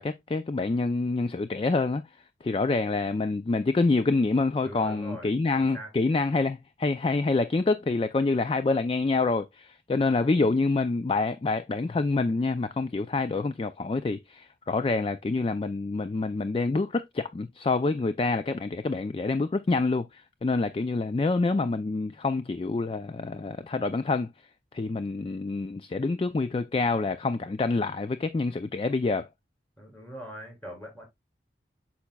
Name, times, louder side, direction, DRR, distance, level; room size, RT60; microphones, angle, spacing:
voice 1, 0.0-2.0 2.4-24.3 24.7-29.3, left 3 dB, 30° left, 0.3 m, -27 dB
voice 2, 4.6-5.3 5.7-5.9 29.8-31.0, equal, 10° left, 3.4 m, -41 dB
8.4 x 5.8 x 2.2 m
head